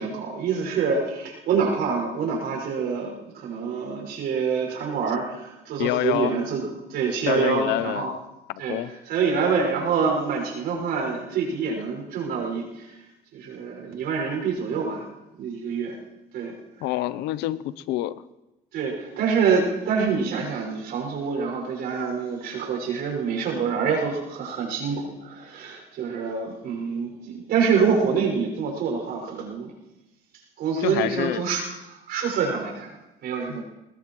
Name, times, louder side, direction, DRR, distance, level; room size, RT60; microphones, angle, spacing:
voice 1, 0.0-8.1 8.6-8.8 9.1-13.0 13.3-15.1 15.4-15.9 16.3-16.5 18.7-29.7 30.6-33.6, right 5 dB, 75° right, 0 dB, 5.9 m, -26 dB
voice 2, 5.8-6.4 7.3-8.2 8.5-8.9 16.8-18.2 30.8-31.4 33.5-33.6, left 15 dB, 90° left, 16 dB, 0.7 m, -27 dB
21.5 x 20.0 x 3.1 m, 0.97 s
cardioid pair, 110°, 17 cm